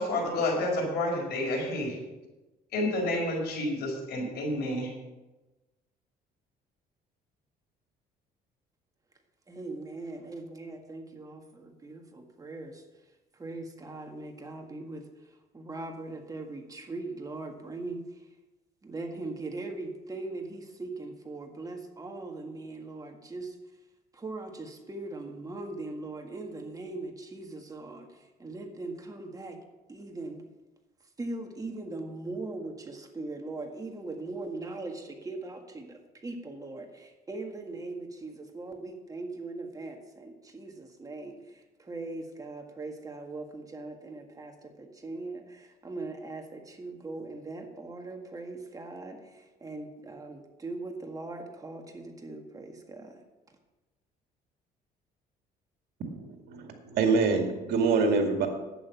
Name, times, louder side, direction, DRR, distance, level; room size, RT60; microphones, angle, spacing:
voice 1, 0.0-2.0 2.7-4.9, left 1 dB, 70° left, 0 dB, 5.1 m, -29 dB
voice 2, 9.5-12.8 13.3-18.3 18.8-23.6 24.1-29.6 29.9-30.4 31.2-53.2, right 2 dB, 20° right, 3 dB, 1.8 m, -40 dB
voice 3, 56.1-58.5, right 4 dB, 75° right, 4 dB, 2.2 m, -26 dB
11.0 x 9.1 x 5.8 m, 1.1 s
cardioid pair, 110°, 17 cm